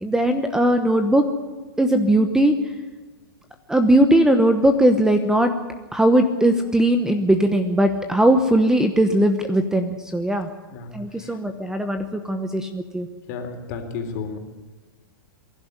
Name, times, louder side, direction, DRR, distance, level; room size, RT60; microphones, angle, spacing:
voice 1, 0.0-1.2 1.8-2.5 3.7-5.5 5.9-10.5 10.9-13.1, right 1 dB, 5° right, 8 dB, 1.1 m, -19 dB
voice 2, 13.3-14.4, left 5 dB, 50° left, 4 dB, 3.7 m, -32 dB
23.0 x 11.5 x 9.7 m, 1.3 s
hypercardioid pair, 130°, 12 cm